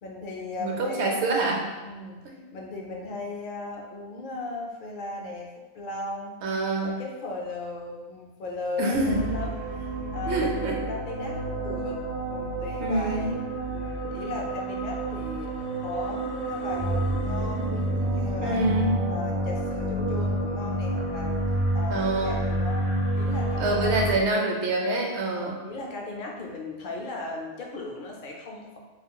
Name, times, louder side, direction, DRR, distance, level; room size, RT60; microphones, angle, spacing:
voice 1, 0.0-1.1 1.8-2.2 2.5-5.5 5.7-6.4 6.8-10.6 10.9-12.0 12.3-18.7 19.1-21.4 21.7-24.3 25.4-28.8, left 2 dB, 60° left, -1 dB, 0.6 m, -37 dB
voice 2, 0.6-1.6 2.2-2.3 6.4-7.0 8.8-9.2 10.3-10.8 12.8-13.3 18.4-19.0 21.9-22.4 23.6-25.6, right 2 dB, 75° right, 0 dB, 0.9 m, -26 dB
sound 1, 8.9-24.2, right 1 dB, 50° right, 0.5 m, -29 dB
2.4 x 2.3 x 3.6 m, 1.2 s
omnidirectional pair, 1.2 m